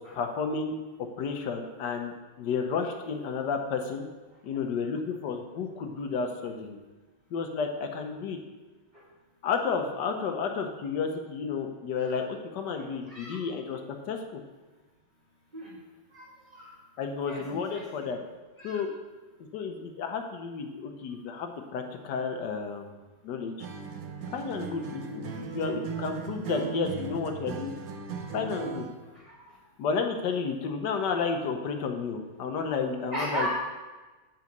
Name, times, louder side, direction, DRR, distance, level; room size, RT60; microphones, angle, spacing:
voice 1, 0.1-0.8 1.2-4.1 4.4-6.8 7.3-8.4 9.4-13.8 14.1-14.2 17.0-18.2 18.6-18.9 19.5-23.0 23.2-23.5 24.3-27.8 28.3-28.9 29.8-33.5, left 5 dB, 60° left, 4 dB, 1.3 m, -31 dB
voice 2, 13.1-13.4 15.5-15.7 16.1-16.3 16.5-16.7 17.3-18.1 18.6-18.8 25.3-25.4 29.2-29.5 33.1-33.5, right 1 dB, 20° right, -9 dB, 2.1 m, -36 dB
Acoustic guitar, 23.6-29.0, right 6 dB, 65° right, 0.9 m, -37 dB
8.9 x 5.7 x 5.2 m, 1.2 s
omnidirectional pair, 2.3 m